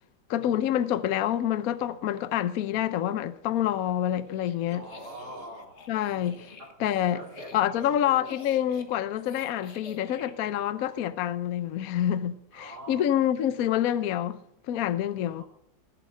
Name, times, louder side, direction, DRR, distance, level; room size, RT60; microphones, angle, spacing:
voice 1, 0.3-4.8 5.9-6.5 6.8-7.2 7.5-14.4 14.7-15.4, left 11 dB, 60° left, 1.0 m, -27 dB
sound 1, 4.1-10.3, left 4 dB, 40° left, 1.5 m, -48 dB
voice 2, 4.7-5.9 6.6-6.7 7.1-8.3 12.5-13.1 15.4-15.5, right 1 dB, 85° right, 5.2 m, -44 dB
19.0 x 8.6 x 5.5 m
omnidirectional pair, 2.0 m